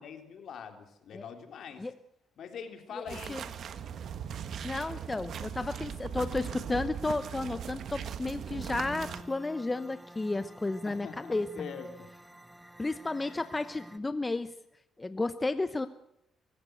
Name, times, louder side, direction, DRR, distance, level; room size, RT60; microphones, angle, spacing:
voice 1, 0.0-1.9 2.4-3.4 10.8-12.1, left 7 dB, 65° left, 6 dB, 3.4 m, -43 dB
voice 2, 3.0-3.4 4.6-11.5 12.8-14.5 15.0-15.9, left 2 dB, 20° left, 12 dB, 0.9 m, -32 dB
sound 1, 3.1-9.2, right 8 dB, 65° right, 1.4 m, -39 dB
sound 2, 3.3-8.4, right 4 dB, 85° right, 5.2 m, -58 dB
sound 3, 8.8-14.0, equal, 10° right, 1.6 m, -50 dB
23.5 x 16.0 x 8.0 m, 0.80 s
cardioid pair, 90°, 0 cm